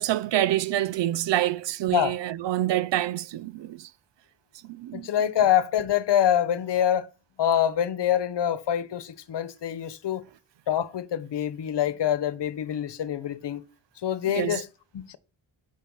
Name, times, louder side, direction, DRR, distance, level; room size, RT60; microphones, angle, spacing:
voice 1, 0.0-3.9 4.6-5.1 14.3-14.6, right 13 dB, 65° right, 0.6 m, -27 dB
voice 2, 4.9-7.1 7.4-10.2 10.7-13.6 14.0-14.7 14.9-15.2, left 10 dB, 60° left, 1.1 m, -25 dB
11.0 x 5.7 x 7.1 m
cardioid pair, 115°, 46 cm